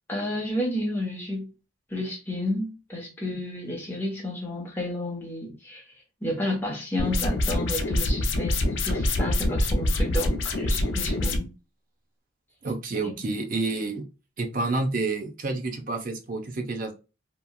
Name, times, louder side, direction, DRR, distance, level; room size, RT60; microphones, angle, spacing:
voice 1, 0.1-1.5 1.9-5.8 6.2-11.5 13.0-13.1, left 1 dB, 10° left, 0.9 m, -31 dB
sound 1, 7.0-11.4, left 1 dB, 75° left, 0.5 m, -25 dB
voice 2, 12.6-14.1 14.4-16.9, right 3 dB, 45° right, 0.6 m, -29 dB
2.9 x 2.4 x 2.2 m
head